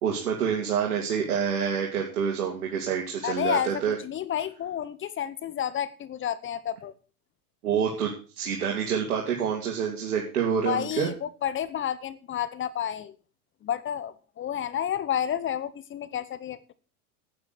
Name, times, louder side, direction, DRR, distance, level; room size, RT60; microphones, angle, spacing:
voice 1, 0.0-4.0 7.6-11.1, right 7 dB, 90° right, 2.9 m, -27 dB
voice 2, 3.2-6.9 10.6-13.2 13.6-16.7, left 10 dB, 30° left, 0.9 m, -30 dB
10.0 x 9.4 x 6.9 m
hypercardioid pair, 115°, 44 cm